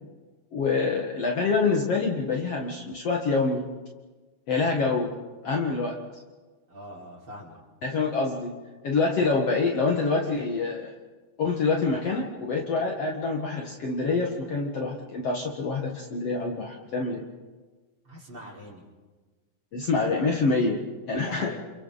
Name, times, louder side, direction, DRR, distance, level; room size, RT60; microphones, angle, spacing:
voice 1, 0.5-3.7 4.5-5.1 5.4-6.0 7.8-8.5 8.8-10.9 11.4-17.3 19.7-21.5, left 4 dB, 50° left, 0 dB, 2.5 m, -26 dB
voice 2, 6.7-7.6 18.0-18.8 21.2-21.6, equal, 30° right, -4 dB, 5.5 m, -43 dB
29.0 x 29.0 x 4.1 m, 1.3 s
omnidirectional pair, 4.0 m